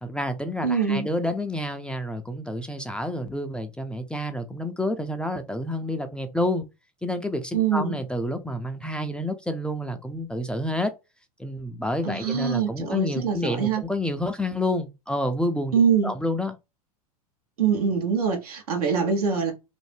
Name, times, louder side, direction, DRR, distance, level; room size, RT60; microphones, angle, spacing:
voice 1, 0.0-6.6 7.0-10.9 11.4-15.7 16.0-16.6, left 1 dB, 5° left, 0.3 m, -29 dB
voice 2, 0.6-1.1 7.5-8.0 12.0-13.8 15.7-16.1 17.6-19.5, right 6 dB, 85° right, 1.0 m, -24 dB
2.6 x 2.1 x 3.2 m
hypercardioid pair, 100°, 19 cm